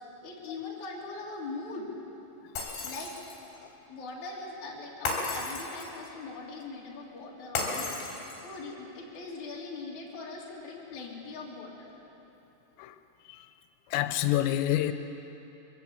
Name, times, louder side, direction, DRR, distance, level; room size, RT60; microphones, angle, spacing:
voice 1, 0.2-1.9 2.8-3.1 3.5-7.9 8.4-11.9, left 3 dB, 40° left, -4 dB, 3.8 m, -41 dB
Shatter, 2.6-3.5 5.1-6.0 7.6-8.6, left 2 dB, 70° left, 5.3 m, -34 dB
voice 2, 13.9-14.9, left 13 dB, 90° left, 9 dB, 3.4 m, -27 dB
23.0 x 15.5 x 8.2 m, 3.0 s
omnidirectional pair, 5.7 m